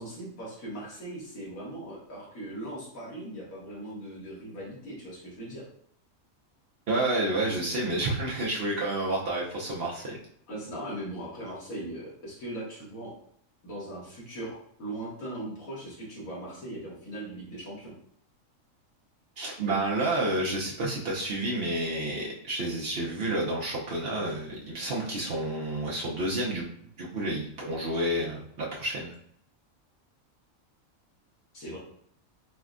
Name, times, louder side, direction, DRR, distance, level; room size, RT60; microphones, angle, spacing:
voice 1, 0.0-5.7 10.5-13.1 13.6-17.9 31.5-31.8, right 1 dB, 85° left, -5 dB, 1.7 m, -39 dB
voice 2, 6.9-10.2 19.4-26.6 27.0-29.1, right 1 dB, 55° right, -3 dB, 0.8 m, -30 dB
4.2 x 2.1 x 2.4 m, 0.66 s
omnidirectional pair, 1.4 m